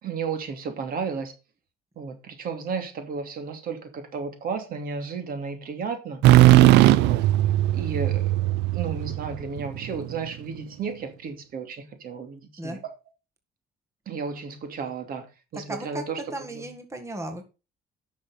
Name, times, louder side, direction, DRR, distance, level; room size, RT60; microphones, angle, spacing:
voice 1, 0.0-1.3 2.0-6.2 6.8-7.2 7.7-12.9 14.1-15.3 15.5-16.2 16.5-16.7, right 5 dB, 60° right, 2.7 m, -33 dB
sound 1, 6.2-10.0, right 15 dB, 85° right, 0.6 m, -18 dB
voice 2, 15.7-16.0 16.3-17.4, right 1 dB, 15° right, 1.8 m, -35 dB
10.0 x 6.4 x 5.7 m
cardioid pair, 110°, 17 cm